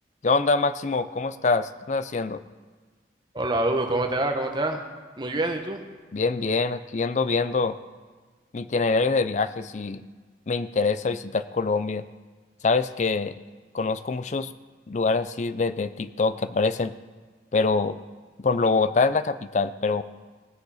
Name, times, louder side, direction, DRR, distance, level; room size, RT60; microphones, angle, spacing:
voice 1, 0.2-2.4 6.1-7.8 8.5-10.0 10.5-12.0 12.6-13.3 13.7-14.5 14.9-16.9 17.5-18.0 18.4-20.0, left 4 dB, 40° left, 13 dB, 0.4 m, -24 dB
voice 2, 3.3-4.8 5.2-5.8, right 2 dB, 25° right, 4 dB, 1.1 m, -26 dB
19.5 x 6.7 x 4.8 m, 1.5 s
head